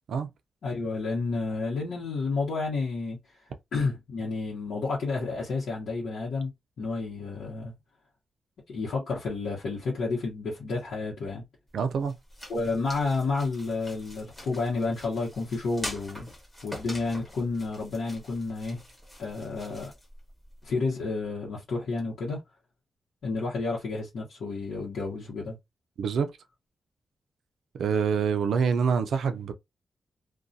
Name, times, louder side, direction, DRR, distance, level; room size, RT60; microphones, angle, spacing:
voice 1, 0.6-3.2 3.7-6.5 6.8-7.7 8.7-11.4 12.5-16.3 16.6-18.8 19.2-19.9 20.6-22.4 23.2-25.6, left 3 dB, 75° left, 0.9 m, -30 dB
sound 1, 11.7-20.7, left 1 dB, 15° left, 1.0 m, -44 dB
voice 2, 11.7-12.2 26.0-26.3 27.7-29.5, right 6 dB, 85° right, 0.4 m, -26 dB
2.3 x 2.2 x 2.6 m
wide cardioid pair, 155°, 0 cm